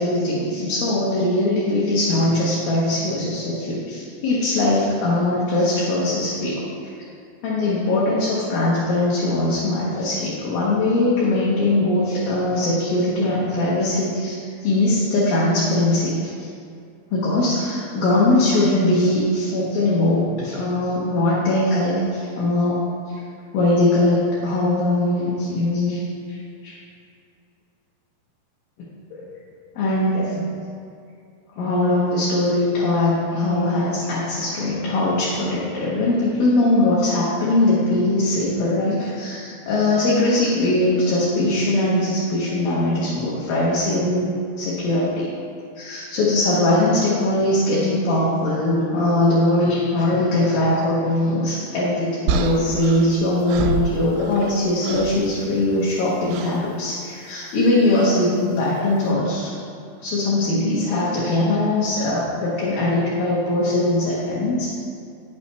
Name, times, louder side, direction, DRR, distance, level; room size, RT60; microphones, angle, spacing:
voice 1, 0.0-6.6 7.4-14.4 14.6-16.5 17.1-22.8 23.5-26.0 26.3-26.4 26.6-26.8 29.1-29.2 29.8-30.4 31.6-44.3 44.6-45.3 45.8-59.5 60.0-64.7, left 2 dB, 70° left, -7 dB, 2.9 m, -21 dB
sound 1, 52.3-54.6 54.8-55.2 56.3-56.6 58.0-58.2, right 6 dB, 90° right, 2.6 m, -27 dB
9.8 x 8.4 x 3.4 m, 2.4 s
omnidirectional pair, 4.5 m